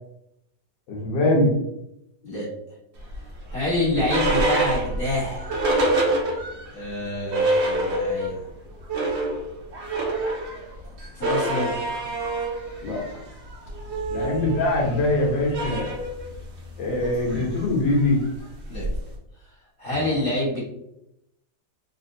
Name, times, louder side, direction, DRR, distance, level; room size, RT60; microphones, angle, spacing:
voice 1, 0.9-1.5 12.8-13.0 14.1-15.9 16.8-18.2 19.9-20.2, left 2 dB, 90° left, -2 dB, 1.7 m, -23 dB
sound 1, 3.1-6.7 7.0-7.1 7.3-8.4 8.7-19.2, right 1 dB, 55° right, 0.8 m, -27 dB
voice 2, 3.5-5.6 6.7-8.4 11.1-11.8 14.1-14.3 18.7-18.9 19.8-20.6, left 1 dB, 35° left, -8 dB, 1.3 m, -27 dB
3.8 x 2.6 x 2.6 m, 0.82 s
omnidirectional pair, 1.9 m